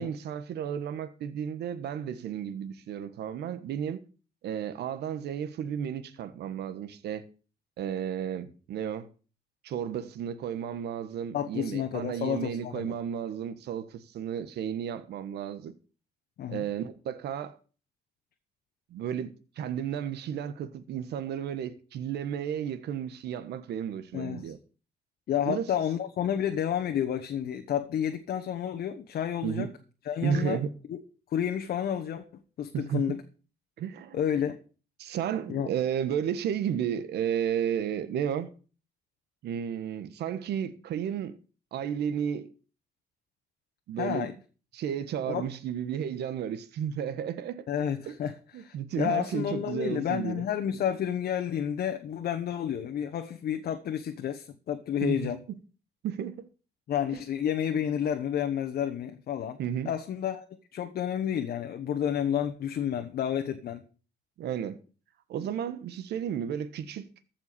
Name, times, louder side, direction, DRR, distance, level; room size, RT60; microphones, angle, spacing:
voice 1, 0.0-4.0 4.4-7.3 7.8-9.1 9.6-15.7 16.5-17.6 18.9-24.6 25.4-25.7 29.4-29.7 30.2-30.7 32.7-33.2 33.8-34.2 35.0-38.5 39.4-41.4 41.7-42.5 43.9-44.3 44.7-47.6 48.1-48.2 48.5-50.4 55.0-55.3 56.0-56.5 57.1-57.2 59.6-59.9 64.4-64.8 65.3-67.1, right 9 dB, 80° right, 1.3 m, -33 dB
voice 2, 11.3-12.9 16.4-16.7 24.1-24.5 25.3-29.7 30.1-30.6 30.9-31.0 31.3-33.2 34.1-34.6 35.5-35.7 44.0-44.3 45.3-45.5 47.7-55.4 56.9-59.6 59.8-60.4 60.7-63.8, left 9 dB, 65° left, 1.1 m, -30 dB
14.5 x 5.8 x 6.8 m
cardioid pair, 110°, 17 cm